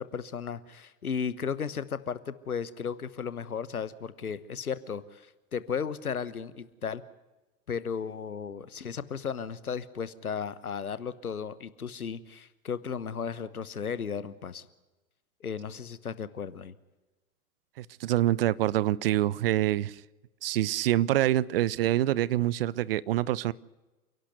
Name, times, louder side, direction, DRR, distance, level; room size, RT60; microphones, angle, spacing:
voice 1, 0.0-5.3 5.5-7.0 7.7-14.7 15.4-16.7, left 6 dB, 75° left, 1.3 m, -35 dB
voice 2, 17.8-20.0 20.4-23.5, right 14 dB, 40° right, 0.6 m, -26 dB
29.0 x 11.5 x 8.0 m
figure-of-eight pair, 100°, 45 cm